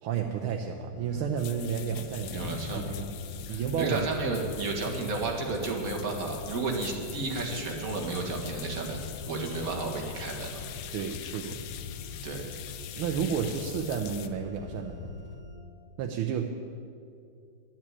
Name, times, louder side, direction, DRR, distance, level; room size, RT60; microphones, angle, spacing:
voice 1, 0.0-3.1 3.5-4.0 10.9-11.6 13.0-15.1 16.0-16.5, right 7 dB, 90° right, 3 dB, 1.6 m, -31 dB
sound 1, 0.9-15.6, left 2 dB, 50° left, 2.1 m, -47 dB
sound 2, 1.4-14.3, left 11 dB, 70° left, 1.0 m, -45 dB
sound 3, 2.2-15.4, left 6 dB, 90° left, 1.5 m, -44 dB
voice 2, 2.2-2.9 3.5-10.7 12.2-12.5, right 3 dB, 45° right, 0 dB, 2.0 m, -32 dB
11.0 x 7.4 x 9.7 m, 2.4 s
omnidirectional pair, 2.2 m